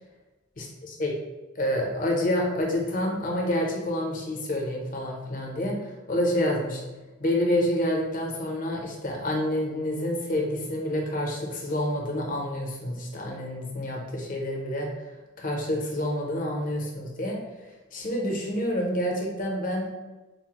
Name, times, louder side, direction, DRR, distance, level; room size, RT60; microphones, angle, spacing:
voice 1, 0.6-1.1 1.5-6.8 7.2-14.9 15.4-17.4 17.9-19.9, left 1 dB, 40° left, -1 dB, 0.7 m, -28 dB
4.2 x 2.0 x 2.9 m, 1.2 s
head